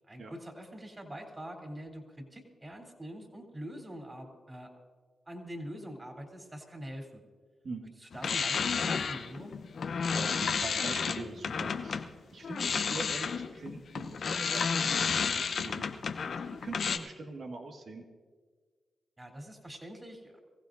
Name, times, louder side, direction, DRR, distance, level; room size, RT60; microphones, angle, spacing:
voice 1, 0.1-4.7 5.3-7.2 8.0-9.6 19.2-20.4, equal, 25° right, 3 dB, 3.4 m, -44 dB
sound 1, 8.1-12.1 12.4-17.0, left 6 dB, 65° left, 0.8 m, -31 dB
voice 2, 10.1-12.1 12.3-16.3 16.6-18.0, right 3 dB, 65° right, 3 dB, 1.8 m, -43 dB
24.0 x 15.5 x 2.7 m, 1.5 s
supercardioid pair, 45°, 0 cm